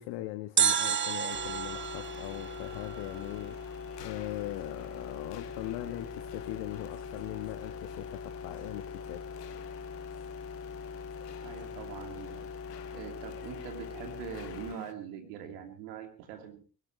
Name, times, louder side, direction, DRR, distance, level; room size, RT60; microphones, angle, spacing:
voice 1, 0.0-9.3, left 16 dB, 70° left, 1.4 m, -40 dB
sound 1, 0.6-14.9, left 9 dB, 90° left, 1.3 m, -52 dB
sound 2, 0.6-3.7 3.9-4.0, right 7 dB, 25° right, 0.6 m, -31 dB
sound 3, 1.3-14.8, left 5 dB, 30° left, 1.2 m, -42 dB
voice 2, 11.4-12.5 12.9-16.6, right 8 dB, 80° right, 2.9 m, -43 dB
23.0 x 14.5 x 3.2 m
hypercardioid pair, 45°, 46 cm